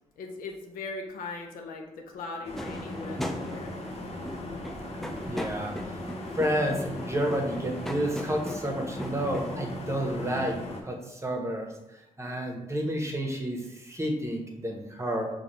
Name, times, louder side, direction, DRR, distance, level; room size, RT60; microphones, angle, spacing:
voice 1, 0.2-3.8, left 3 dB, 75° left, 2 dB, 0.6 m, -39 dB
sound 1, 2.4-10.8, left 1 dB, 45° left, 0.8 m, -38 dB
sound 2, 2.6-9.6, equal, ahead, 0.4 m, -39 dB
voice 2, 5.2-6.0 6.3-10.6 10.8-15.3, equal, 20° right, 2 dB, 1.0 m, -30 dB
4.9 x 2.3 x 3.1 m, 0.88 s
hypercardioid pair, 45°, 15 cm